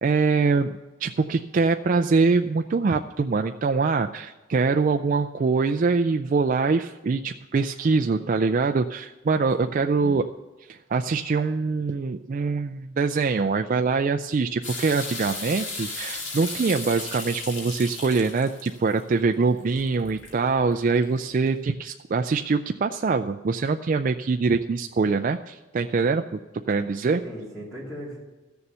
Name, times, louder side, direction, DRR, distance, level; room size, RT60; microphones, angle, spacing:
voice 1, 0.0-10.2 10.7-26.4 26.7-27.2, right 4 dB, 40° right, 7 dB, 0.3 m, -24 dB
voice 2, 9.6-10.3 27.2-28.2, equal, ahead, -9 dB, 2.7 m, -39 dB
sound 1, 14.6-21.5, left 3 dB, 60° left, 2.3 m, -36 dB
14.0 x 7.0 x 6.7 m, 1.2 s
head